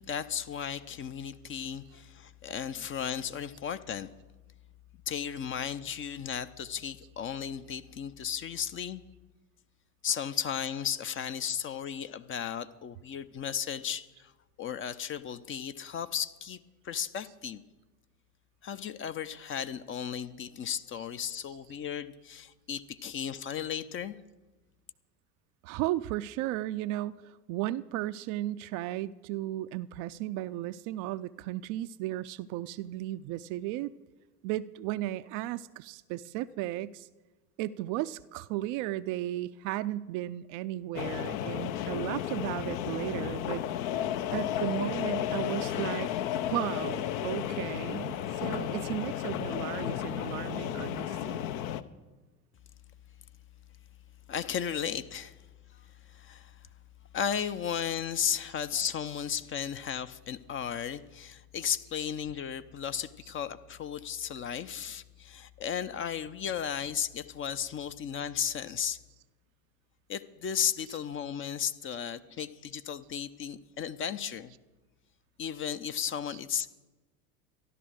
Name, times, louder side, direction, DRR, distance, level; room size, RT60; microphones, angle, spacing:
voice 1, 0.1-4.1 5.1-9.0 10.0-14.3 14.6-16.6 16.8-17.6 18.6-24.2 54.3-55.4 55.7-56.6 57.1-69.0 70.1-74.5 75.4-76.7, left 8 dB, 25° left, 12 dB, 0.6 m, -35 dB
voice 2, 25.6-33.9 34.4-37.1 37.6-43.6 44.3-46.1 46.4-51.5, right 15 dB, 45° right, 13 dB, 0.5 m, -35 dB
sound 1, 40.9-51.8, left 11 dB, 60° left, 0.8 m, -33 dB
13.5 x 11.5 x 6.3 m, 1.2 s
hypercardioid pair, 80°, 47 cm